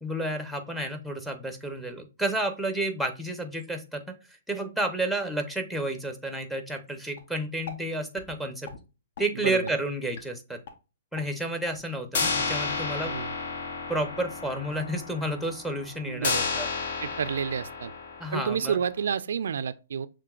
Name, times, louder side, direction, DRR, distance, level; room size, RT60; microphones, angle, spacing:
voice 1, 0.0-4.0 4.5-8.7 9.2-10.6 11.1-13.2 13.9-16.7 18.2-18.8, right 1 dB, ahead, 0.7 m, -31 dB
sound 1, 7.2-7.3 7.7-7.8 8.2-8.3 8.7-8.8 9.2-9.3 9.7-9.8 10.2-10.3 10.7-10.8 11.2-11.3 11.7-11.8 12.1-18.8, left 4 dB, 65° left, 0.9 m, -32 dB
voice 2, 9.4-9.7 13.1-13.3 16.0-16.4 17.0-17.9 18.3-20.1, right 7 dB, 75° right, 0.3 m, -30 dB
6.7 x 3.1 x 2.3 m
hypercardioid pair, 150°, 0 cm